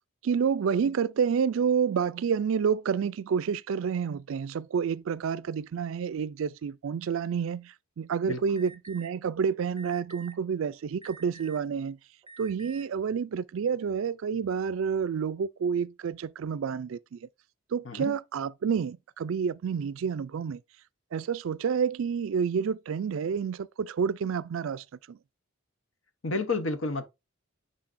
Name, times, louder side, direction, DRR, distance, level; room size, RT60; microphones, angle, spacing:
voice 1, 0.2-12.0 12.4-17.3 17.7-20.6 21.1-25.2, right 6 dB, 65° right, 0.3 m, -29 dB
Alarm, 8.6-9.1 9.8-10.3 11.0-11.7 12.2-12.8, right 4 dB, 20° right, 0.8 m, -48 dB
voice 2, 17.8-18.2 26.2-27.0, left 3 dB, 65° left, 0.9 m, -30 dB
9.6 x 4.0 x 2.6 m
head